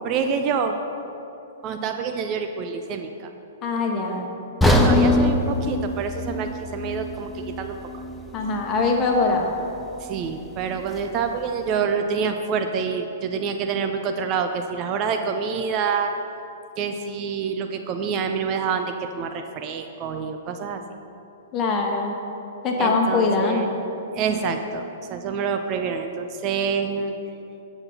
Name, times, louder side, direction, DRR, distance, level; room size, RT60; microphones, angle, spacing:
voice 1, 0.0-0.8 1.6-3.3 4.6-7.8 10.0-16.1 16.8-20.8 22.8-23.7 24.1-27.1, right 6 dB, 35° right, 6 dB, 0.5 m, -27 dB
voice 2, 3.6-4.3 8.3-9.5 21.5-22.2 22.6-23.8, left 3 dB, 30° left, 1 dB, 1.3 m, -22 dB
sound 1, 4.6-8.7 9.0-9.2 9.8-9.9, left 1 dB, 5° left, 0.7 m, -22 dB
9.0 x 6.0 x 5.5 m, 2.9 s
figure-of-eight pair, 110°, 0 cm